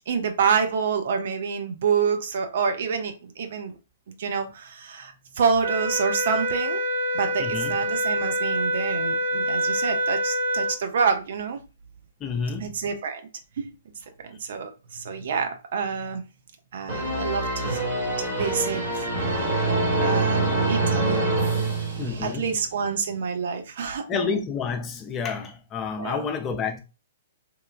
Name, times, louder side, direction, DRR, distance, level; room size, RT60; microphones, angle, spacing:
voice 1, 0.1-3.7 4.2-6.8 7.1-11.6 12.6-13.2 13.6-13.7 14.2-16.2 16.7-17.8 18.2-19.5 20.0-24.3 26.0-26.2, right 6 dB, 60° right, 0.5 m, -28 dB
sound 1, 5.6-10.8, right 1 dB, 85° right, 0.9 m, -26 dB
voice 2, 7.4-7.8 12.2-12.8 22.0-22.5 24.1-26.8, left 5 dB, 20° left, 0.5 m, -29 dB
sound 2, 16.9-22.5, right 2 dB, 35° right, 1.5 m, -25 dB
3.0 x 2.2 x 2.3 m
figure-of-eight pair, 120°, 0 cm